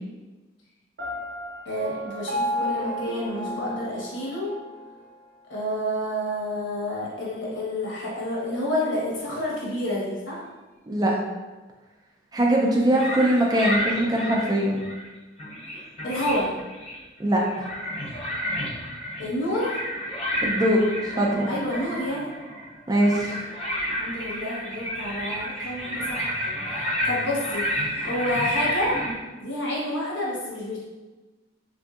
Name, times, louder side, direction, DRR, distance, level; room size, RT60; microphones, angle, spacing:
Piano, 1.0-4.8, equal, 65° right, 0.7 m, -31 dB
voice 1, 1.6-4.5 5.5-10.4 16.0-16.5 19.2-19.7 21.5-22.3 23.1-23.2 23.9-26.3 27.0-28.9 29.4-30.8, left 1 dB, 85° left, -6 dB, 1.1 m, -29 dB
voice 2, 12.3-14.8 17.2-17.7 20.4-21.5 22.9-23.4, right 1 dB, 20° right, -2 dB, 0.4 m, -22 dB
sound 1, 12.9-15.1 15.4-17.0 17.4-29.1, equal, 30° left, 0.7 m, -30 dB
3.7 x 2.6 x 2.3 m, 1.2 s
head